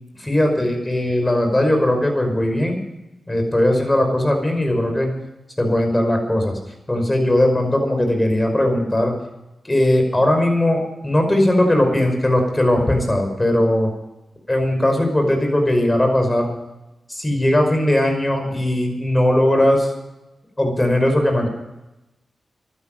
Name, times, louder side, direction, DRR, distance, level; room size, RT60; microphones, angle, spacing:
voice 1, 0.2-2.8 3.3-5.1 5.6-6.6 6.9-9.1 9.6-13.9 14.5-16.5 17.1-19.9 20.6-21.5, left 1 dB, 20° left, 4 dB, 5.2 m, -18 dB
11.5 x 10.5 x 9.1 m, 0.97 s
cardioid pair, 50°, 0 cm